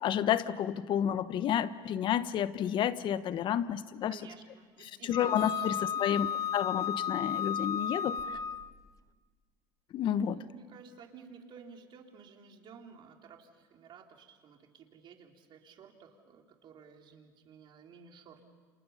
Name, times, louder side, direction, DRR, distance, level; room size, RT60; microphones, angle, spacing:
voice 1, 0.0-4.2 5.0-6.3 6.5-8.2 9.9-10.4, left 10 dB, 50° left, 14 dB, 1.1 m, -30 dB
voice 2, 4.1-6.2 10.1-18.5, right 6 dB, 50° right, 2 dB, 3.5 m, -53 dB
Wind instrument woodwind instrument, 5.1-8.7, left 8 dB, 30° left, 0.7 m, -33 dB
sound 1, 5.3-5.7 6.7-6.8 7.4-7.5 8.2-8.9, right 11 dB, 65° right, 3.2 m, -47 dB
30.0 x 27.5 x 5.7 m, 1.5 s
supercardioid pair, 95°, 11 cm